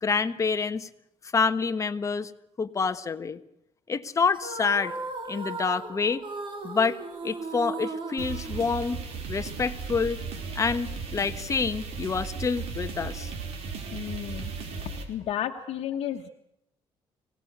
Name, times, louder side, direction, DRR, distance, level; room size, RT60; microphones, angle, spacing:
voice 1, 0.0-0.9 1.3-2.3 2.6-3.4 3.9-4.9 5.3-6.2 6.6-7.0 7.2-9.0 9.3-10.2 10.5-13.3, left 5 dB, 30° left, 10 dB, 1.3 m, -27 dB
sound 1, 4.3-9.2, right 3 dB, 50° right, 3.6 m, -37 dB
sound 2, 8.2-15.0, right 5 dB, 80° right, 4.7 m, -36 dB
voice 2, 13.9-14.5 15.1-16.3, left 10 dB, 75° left, 2 dB, 1.4 m, -32 dB
25.0 x 18.0 x 8.1 m, 0.80 s
cardioid pair, 135°, 10 cm